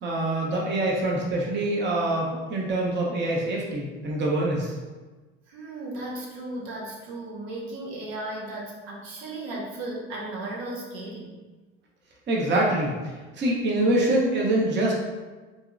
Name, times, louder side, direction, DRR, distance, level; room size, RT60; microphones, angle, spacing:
voice 1, 0.0-4.7 12.3-12.9 13.4-14.9, right 1 dB, 35° right, -2 dB, 0.8 m, -25 dB
voice 2, 5.5-11.4, right 2 dB, 70° right, -3 dB, 0.9 m, -35 dB
4.2 x 2.8 x 2.5 m, 1.3 s
hypercardioid pair, 70°, 33 cm